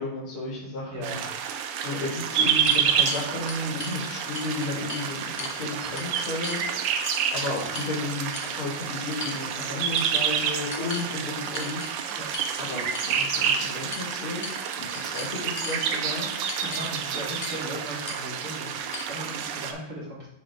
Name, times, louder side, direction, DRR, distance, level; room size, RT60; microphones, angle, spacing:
voice 1, 0.0-1.2 1.8-6.6 7.3-11.9 12.6-14.4 14.7-16.3, left 2 dB, 80° left, -4 dB, 2.8 m, -33 dB
voice 2, 0.9-2.0 10.4-10.6 12.2-12.3 16.6-20.3, equal, 40° right, -6 dB, 3.0 m, -38 dB
sound 1, 1.0-19.7, right 7 dB, 90° right, 1.6 m, -29 dB
sound 2, 1.4-1.5 2.1-4.0 4.4-5.1 5.4-5.6 6.0-6.6 7.1-8.0 8.3-8.5 9.2-9.7 10.0-10.3 10.7-11.1 11.5-11.9 12.3-12.5 12.9-13.5 13.9-14.1 14.4-14.7 14.9-15.8 16.4-16.9 17.4-17.6 18.1-18.2 18.9-19.0, left 3 dB, 50° left, 0.7 m, -37 dB
9.9 x 3.6 x 3.5 m, 0.78 s
omnidirectional pair, 2.3 m